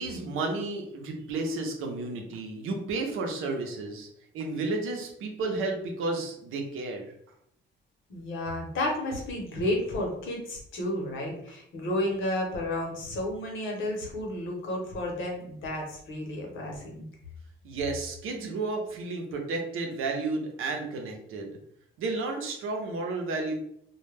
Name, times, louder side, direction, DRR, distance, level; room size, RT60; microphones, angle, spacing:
voice 1, 0.0-4.1 4.3-7.1 17.6-21.6 22.0-23.5, right 3 dB, 85° right, 2 dB, 0.7 m, -32 dB
voice 2, 8.1-17.1, left 1 dB, 70° left, 0 dB, 0.9 m, -32 dB
2.2 x 2.1 x 3.2 m, 0.72 s
cardioid pair, 140°, 21 cm